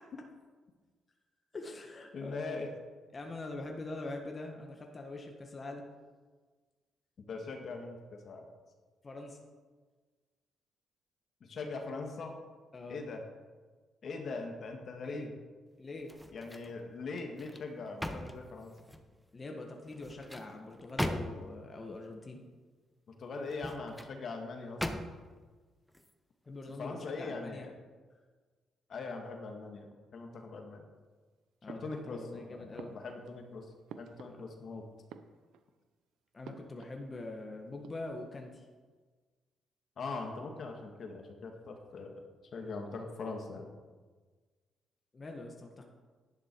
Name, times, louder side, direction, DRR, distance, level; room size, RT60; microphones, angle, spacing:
voice 1, 1.5-2.6 3.1-5.9 9.0-9.4 12.7-13.1 15.0-15.3 15.8-16.1 19.3-22.4 26.5-27.7 31.6-33.0 36.3-38.7 45.1-45.8, left 2 dB, 30° left, 2 dB, 1.6 m, -43 dB
voice 2, 2.1-2.7 7.3-8.5 11.4-12.4 12.9-13.2 14.0-15.3 16.3-18.7 23.1-25.1 26.8-27.7 28.9-30.9 31.7-33.7 34.0-34.8 40.0-42.2 42.5-43.7, left 3 dB, 55° left, 3 dB, 1.9 m, -41 dB
sound 1, 16.0-16.8 17.2-19.1 19.9-21.6 23.4-24.1 24.8-25.4 25.9-26.1, equal, 5° left, 1.0 m, -40 dB
sound 2, 31.7-32.4 32.8-34.7 35.0-35.8 36.4-37.1 37.3-37.4 37.7-38.4, right 8 dB, 80° right, 0.7 m, -52 dB
11.5 x 10.5 x 4.7 m, 1.4 s
cardioid pair, 90°, 0 cm